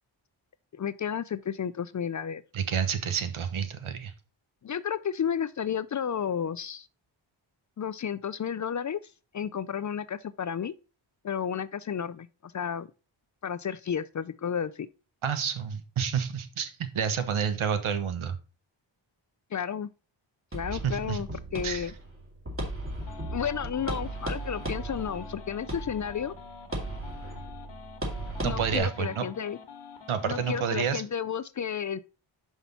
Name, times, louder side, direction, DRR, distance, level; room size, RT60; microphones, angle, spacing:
voice 1, 0.7-2.4 4.6-6.9 7.8-9.0 9.3-10.7 11.2-12.9 13.4-14.9 19.5-19.9 20.5-21.9 23.3-26.3 28.4-29.6 30.3-32.0, left 8 dB, 40° left, 0.4 m, -32 dB
voice 2, 2.5-4.1 15.2-18.4 20.7-21.2 21.6-21.9 28.4-29.2 30.1-31.0, right 7 dB, 80° right, 1.2 m, -29 dB
sound 1, 20.5-28.8, right 2 dB, 25° right, 2.4 m, -36 dB
sound 2, 23.0-31.0, left 5 dB, 60° left, 1.4 m, -47 dB
5.8 x 5.5 x 4.1 m
cardioid pair, 75°, 48 cm